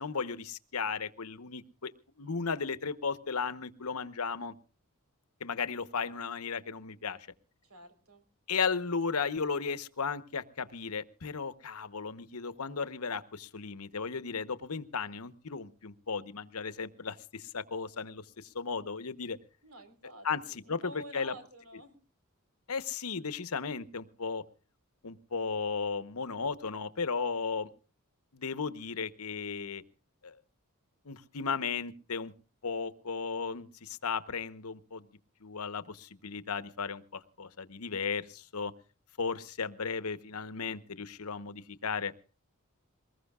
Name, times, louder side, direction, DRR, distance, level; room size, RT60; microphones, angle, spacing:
voice 1, 0.0-1.9 2.2-4.5 5.4-7.2 8.5-19.4 20.2-21.3 22.7-24.4 25.0-27.7 28.3-29.8 30.2-30.4 31.0-32.3 32.6-35.1 35.4-38.7 39.2-42.1, left 5 dB, 90° left, 12 dB, 1.0 m, -35 dB
voice 2, 7.6-8.2 19.6-22.0, right 1 dB, 75° right, 8 dB, 4.0 m, -49 dB
23.5 x 20.5 x 2.4 m, 0.37 s
head